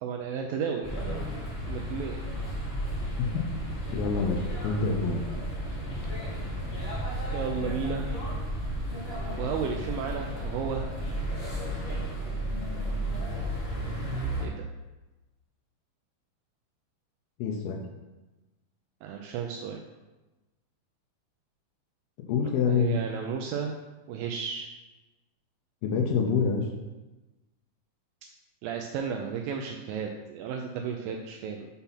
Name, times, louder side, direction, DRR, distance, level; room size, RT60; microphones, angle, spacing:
voice 1, 0.0-1.0 1.7-2.2 7.3-8.1 9.4-10.9 14.4-14.7 19.0-19.8 22.7-23.8 24.1-24.7 28.6-31.7, right 6 dB, 80° right, 3 dB, 2.2 m, -33 dB
sound 1, 0.8-14.4, equal, 45° left, 0.7 m, -33 dB
voice 2, 3.9-5.2 17.4-17.8 22.3-23.0 25.8-26.7, left 5 dB, 85° left, 1 dB, 2.6 m, -26 dB
6.8 x 4.1 x 5.7 m, 1.1 s
omnidirectional pair, 4.3 m